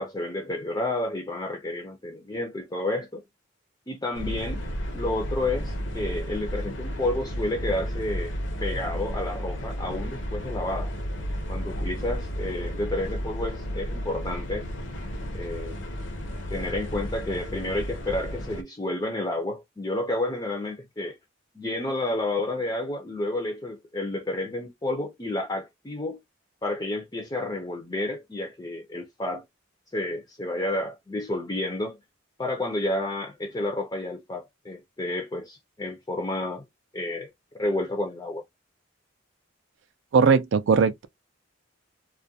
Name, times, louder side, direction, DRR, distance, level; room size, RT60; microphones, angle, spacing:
voice 1, 0.0-3.2 3.9-4.6 4.9-8.3 8.6-10.9 11.5-14.7 15.3-15.9 16.5-21.2 21.5-26.2 26.6-29.4 29.9-32.0 32.4-36.6 36.9-37.3 37.6-38.4, left 2 dB, 20° left, 0.4 m, -30 dB
sound 1, 4.1-18.6, equal, 65° left, 0.6 m, -33 dB
voice 2, 40.1-41.1, right 5 dB, 65° right, 0.4 m, -19 dB
2.3 x 2.1 x 2.7 m
head